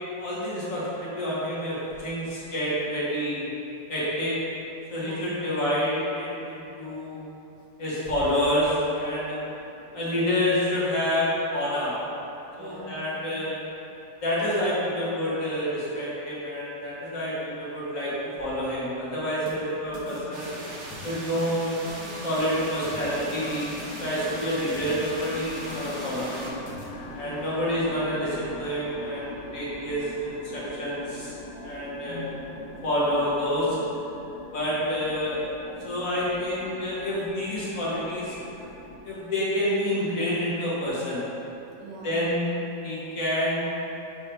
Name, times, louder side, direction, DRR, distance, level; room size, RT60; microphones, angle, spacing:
voice 1, 0.2-3.4 3.9-4.3 4.9-7.2 7.8-9.4 9.9-12.0 12.6-13.6 14.2-18.1 18.4-20.5 21.0-21.7 22.2-23.7 24.0-26.5 27.1-31.3 31.6-32.2 32.8-33.8 34.5-35.4 35.8-38.5 39.0-41.2 42.0-42.4 42.8-43.6, equal, 50° left, -8 dB, 1.6 m, -28 dB
voice 2, 4.9-5.2 9.7-10.0 12.4-13.3 26.9-27.6 31.4-33.0 41.6-42.2 42.8-43.0, equal, 75° right, -3 dB, 1.4 m, -45 dB
sound 1, 19.5-26.8, left 2 dB, 70° left, 1.5 m, -44 dB
sound 2, 20.3-26.5, right 1 dB, 50° right, 1.0 m, -39 dB
sound 3, 22.3-39.0, left 1 dB, 90° left, 1.4 m, -43 dB
6.5 x 3.2 x 4.5 m, 2.9 s
omnidirectional pair, 1.9 m